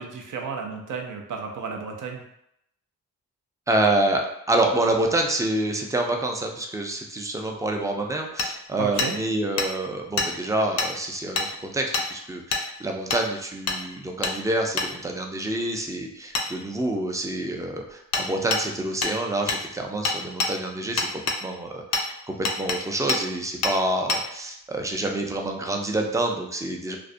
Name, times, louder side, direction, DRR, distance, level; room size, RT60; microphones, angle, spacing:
voice 1, 0.0-2.2 8.8-9.2, right 5 dB, 65° right, 2 dB, 0.6 m, -32 dB
voice 2, 3.7-27.0, right 1 dB, 10° right, 2 dB, 0.4 m, -27 dB
Hammer, 8.4-8.5 9.0-9.1 9.6-9.7 10.2-10.3 10.8-10.9 11.4-11.5 11.9-12.1 12.5-12.6 13.1-13.2 13.7-13.8 14.2-14.4 14.8-14.9 16.3-16.5 18.1-18.3 18.5-18.6 19.0-19.1 19.5-19.6 20.0-20.5 21.0-21.4 21.9-22.1 22.4-22.8 23.1-23.2 23.6-23.8 24.1-24.2, left 3 dB, 45° left, 0.5 m, -25 dB
2.4 x 2.0 x 2.5 m, 0.77 s
cardioid pair, 70°, 34 cm